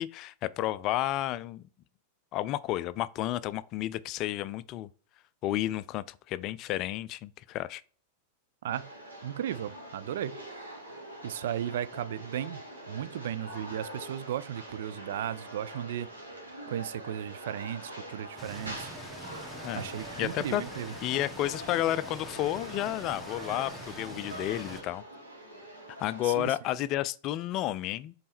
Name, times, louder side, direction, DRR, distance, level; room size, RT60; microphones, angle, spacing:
voice 1, 0.0-1.6 2.3-4.9 5.4-7.8 19.6-19.9 20.2-20.6 21.0-25.0 26.0-28.1, left 14 dB, 40° left, 0.3 m, -31 dB
sound 1, 8.7-26.6, right 1 dB, 80° right, 2.0 m, -44 dB
voice 2, 9.2-10.4 11.2-12.6 12.9-16.1 16.7-18.9 19.7-20.9 26.2-26.5, right 10 dB, 60° right, 0.3 m, -35 dB
sound 2, 18.4-24.8, equal, ahead, 1.2 m, -44 dB
5.3 x 4.2 x 4.2 m
figure-of-eight pair, 90°, 0 cm